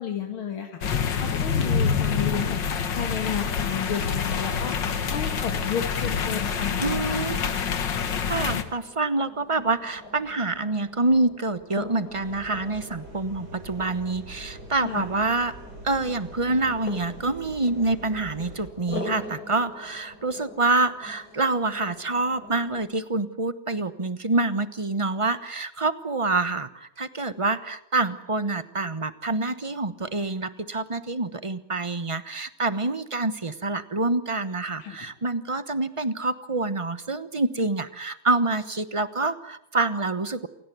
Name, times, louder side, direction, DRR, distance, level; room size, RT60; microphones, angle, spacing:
voice 1, 0.0-2.6 3.0-7.2 14.8-15.1 34.8-35.0, left 8 dB, 90° left, 4 dB, 2.9 m, -32 dB
sound 1, 0.8-8.6, left 6 dB, 65° left, 2.2 m, -26 dB
sound 2, 3.7-22.9, left 2 dB, 45° left, 4.4 m, -44 dB
voice 2, 6.8-7.7 8.3-15.6 15.8-40.5, right 2 dB, 25° right, 13 dB, 0.8 m, -26 dB
sound 3, 12.1-18.7, right 1 dB, 75° right, 6.7 m, -44 dB
27.5 x 18.0 x 9.4 m, 0.81 s
omnidirectional pair, 2.2 m